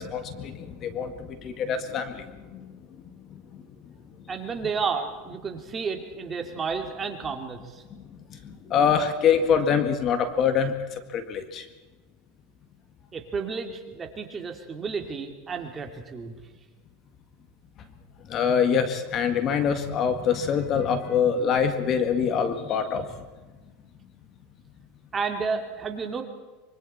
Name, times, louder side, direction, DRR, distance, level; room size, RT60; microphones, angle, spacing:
voice 1, 0.0-2.7 3.3-3.4 8.3-11.7 18.3-23.1, left 7 dB, 40° left, 8 dB, 1.9 m, -25 dB
voice 2, 4.3-7.8 13.1-16.4 25.1-26.2, right 5 dB, 25° right, 4 dB, 2.6 m, -31 dB
25.0 x 24.0 x 4.3 m, 1.3 s
supercardioid pair, 125°, 0 cm